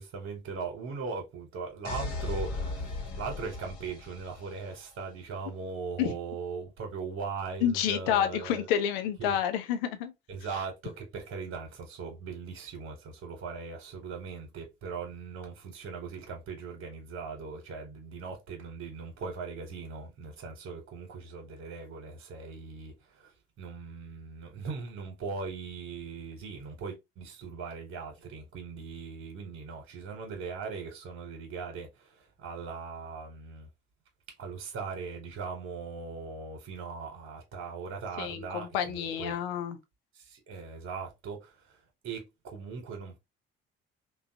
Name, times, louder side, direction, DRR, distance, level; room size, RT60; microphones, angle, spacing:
voice 1, 0.0-8.7 9.2-9.4 10.3-33.7 34.4-39.4 40.1-43.2, right 5 dB, 50° right, 1.0 m, -39 dB
sound 1, 1.8-4.7, left 3 dB, 50° left, 1.1 m, -36 dB
voice 2, 7.6-10.1 38.2-39.8, left 10 dB, 75° left, 0.6 m, -29 dB
3.0 x 2.2 x 2.7 m
figure-of-eight pair, 50°, 30 cm